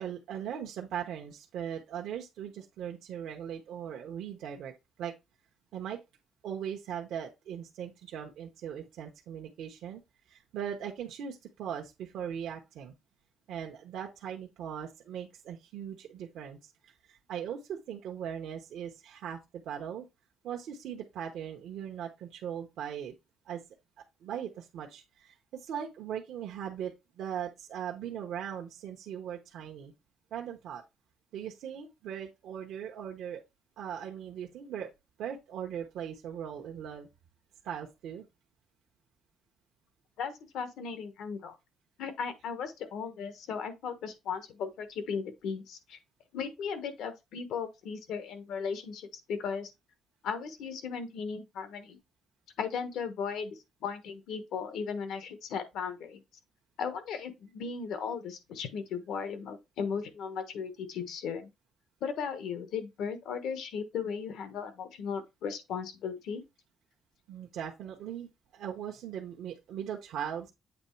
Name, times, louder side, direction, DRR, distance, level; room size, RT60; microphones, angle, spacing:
voice 1, 0.0-4.7 5.0-5.1 5.7-6.0 6.4-10.0 10.3-12.9 13.5-16.6 16.8-20.1 20.4-23.1 23.5-23.6 24.2-29.9 30.3-30.8 31.3-33.4 33.8-34.9 35.2-37.1 37.6-38.3 67.3-70.5, right 9 dB, 80° right, 0.9 m, -39 dB
voice 2, 40.2-41.6 42.0-46.0 46.3-49.7 50.2-52.0 52.6-56.2 56.8-61.5 62.0-66.4, left 6 dB, 80° left, 1.2 m, -36 dB
8.1 x 3.2 x 4.4 m
cardioid pair, 145°, 0 cm